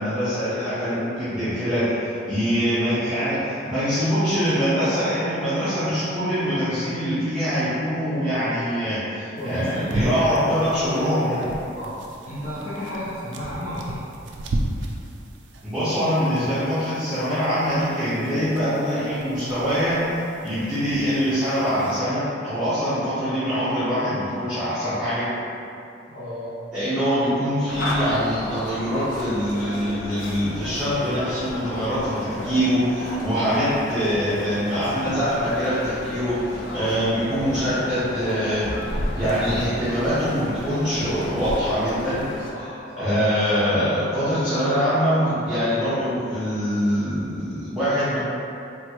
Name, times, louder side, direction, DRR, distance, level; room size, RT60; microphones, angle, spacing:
voice 1, 0.0-11.4 15.6-25.3 26.7-38.7 39.1-42.2 43.0-48.2, equal, 5° right, -16 dB, 0.7 m, -24 dB
voice 2, 9.3-10.2 11.7-12.0 12.2-14.0 26.1-26.6 42.5-43.1, equal, 40° left, -13 dB, 0.7 m, -33 dB
sound 1, 9.4-22.0, right 1 dB, 65° right, 0.3 m, -36 dB
sound 2, 27.7-42.5, left 1 dB, 80° left, 0.4 m, -33 dB
3.4 x 2.3 x 2.9 m, 2.7 s
head